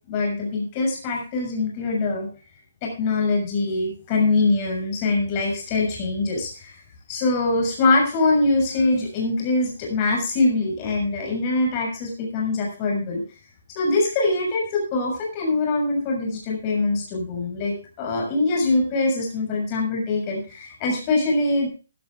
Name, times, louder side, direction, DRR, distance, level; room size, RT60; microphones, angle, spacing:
voice 1, 0.1-2.3 2.8-6.8 7.1-13.2 13.7-21.7, left 2 dB, 25° left, 0 dB, 6.7 m, -23 dB
16.0 x 11.0 x 3.7 m, 0.35 s
hypercardioid pair, 160°, 0 cm